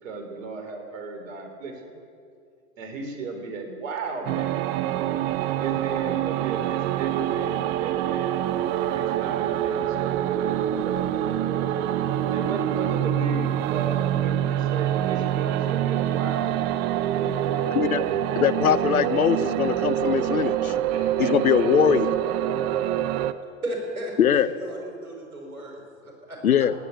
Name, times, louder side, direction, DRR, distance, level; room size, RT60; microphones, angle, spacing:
voice 1, 0.0-1.9 2.8-4.6 5.6-8.4 8.8-11.8 12.3-18.2 20.9-22.0, right 3 dB, 60° right, 4 dB, 3.5 m, -35 dB
sound 1, 4.3-23.3, right 11 dB, 25° right, 0.5 m, -25 dB
voice 2, 18.4-20.7 21.2-22.1 24.2-24.5 26.4-26.7, left 9 dB, 80° left, 16 dB, 0.8 m, -21 dB
voice 3, 23.6-26.4, right 1 dB, 85° right, 0 dB, 5.2 m, -35 dB
17.5 x 9.0 x 8.1 m, 2.3 s
figure-of-eight pair, 100°, 42 cm